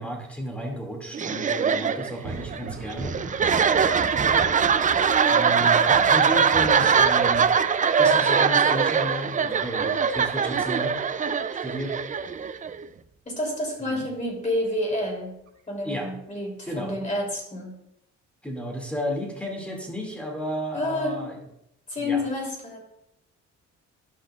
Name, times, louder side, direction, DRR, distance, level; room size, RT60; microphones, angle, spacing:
voice 1, 0.0-3.1 5.3-7.5 8.0-11.0 11.6-12.0 13.9-14.0 15.8-16.1 16.7-16.9 18.4-21.4 22.0-22.2, equal, 5° left, 0 dB, 2.3 m, -33 dB
sound 1, 1.1-12.8, right 6 dB, 25° right, 0.4 m, -22 dB
Thunder, 2.2-11.4 11.8-13.0 14.6-14.7 15.5-15.6, right 3 dB, 75° right, 2.5 m, -39 dB
voice 2, 13.2-15.3 15.7-17.7 20.7-21.3 21.9-22.8, left 1 dB, 25° left, 0 dB, 3.2 m, -29 dB
11.5 x 5.8 x 2.4 m, 0.80 s
cardioid pair, 90°, 30 cm